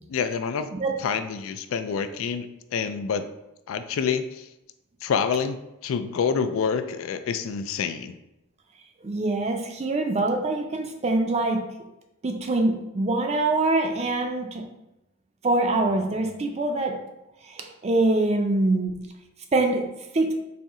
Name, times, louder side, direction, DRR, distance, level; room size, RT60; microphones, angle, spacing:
voice 1, 0.1-0.7 1.0-2.5 2.7-3.2 3.7-4.5 5.0-5.6 5.8-8.2, left 6 dB, 75° left, 10 dB, 0.3 m, -27 dB
voice 2, 9.0-11.7 12.2-14.7 15.4-17.0 17.4-19.0 19.5-19.9 20.1-20.3, right 2 dB, 30° right, 4 dB, 0.4 m, -24 dB
4.2 x 2.6 x 3.6 m, 0.91 s
head